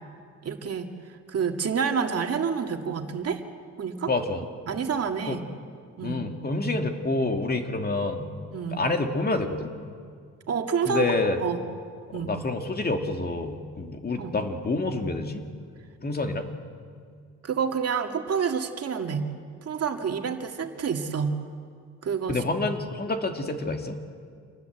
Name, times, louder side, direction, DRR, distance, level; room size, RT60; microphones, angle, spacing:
voice 1, 0.4-3.4 3.8-4.1 4.7-5.4 6.0-6.2 8.5-8.8 10.5-11.1 11.4-11.6 12.1-12.3 14.2-14.3 17.4-19.3 19.6-21.3 22.0-22.4, right 6 dB, 55° right, 4 dB, 2.2 m, -28 dB
voice 2, 4.1-4.4 5.3-5.4 6.0-8.3 8.7-9.7 10.9-11.4 12.1-15.4 16.0-16.5 22.3-24.0, left 2 dB, 30° left, 4 dB, 2.4 m, -28 dB
27.5 x 19.0 x 8.1 m, 2.2 s
cardioid pair, 90°, 30 cm